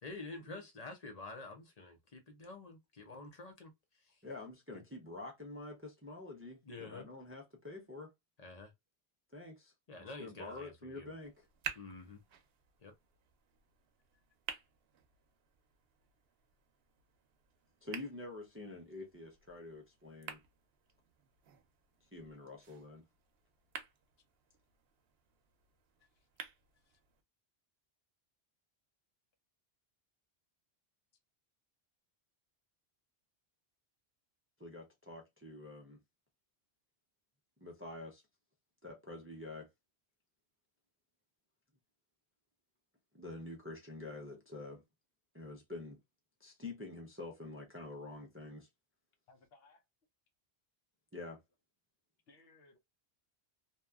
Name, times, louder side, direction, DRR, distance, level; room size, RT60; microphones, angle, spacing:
voice 1, 0.0-3.7 4.0-4.2 4.7-4.8 6.6-7.1 8.4-8.7 9.9-11.1 11.8-12.2 12.8-12.9, left 3 dB, 45° left, 0.7 m, -48 dB
voice 2, 4.2-8.1 9.3-9.7 10.0-11.5 17.8-20.4 22.1-23.0 34.6-36.0 37.6-38.2 38.8-39.7 43.1-44.8 45.3-46.0 46.4-48.7 51.1-51.4, left 2 dB, 20° right, 0.4 m, -47 dB
sound 1, 11.2-27.2, right 7 dB, 75° right, 0.8 m, -52 dB
voice 3, 49.3-49.8 52.3-52.8, left 3 dB, 70° left, 0.9 m, -64 dB
2.8 x 2.3 x 2.2 m
omnidirectional pair, 1.1 m